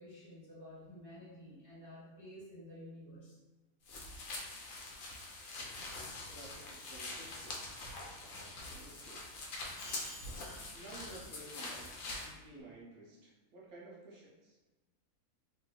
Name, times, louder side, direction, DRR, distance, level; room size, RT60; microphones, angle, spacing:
voice 1, 0.0-3.4 5.4-6.2 7.9-8.1 9.6-11.3, left 1 dB, 10° left, -10 dB, 1.3 m, -52 dB
sound 1, 3.9-12.3, left 2 dB, 65° left, 1.0 m, -44 dB
voice 2, 6.2-7.9 8.2-9.3 10.7-11.9 12.2-14.6, right 2 dB, 75° right, -5 dB, 1.3 m, -54 dB
3.3 x 3.0 x 2.2 m, 1.2 s
omnidirectional pair, 1.6 m